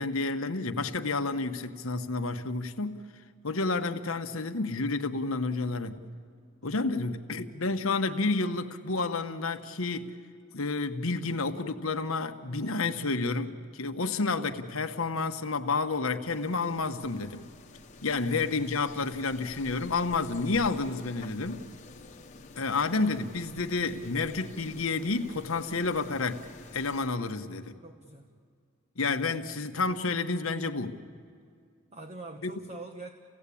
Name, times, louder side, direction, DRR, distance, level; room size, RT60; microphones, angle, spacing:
voice 1, 0.0-3.0 3.4-6.0 6.6-10.1 10.5-17.4 18.0-21.6 22.6-26.5 26.7-27.7 29.0-31.0 32.4-32.5, left 3 dB, 85° left, 1.2 m, -30 dB
sound 1, 16.3-27.1, left 3 dB, 35° left, 1.3 m, -49 dB
voice 2, 27.8-28.3 31.9-33.1, right 3 dB, 30° right, 1.1 m, -44 dB
29.0 x 17.0 x 8.5 m
head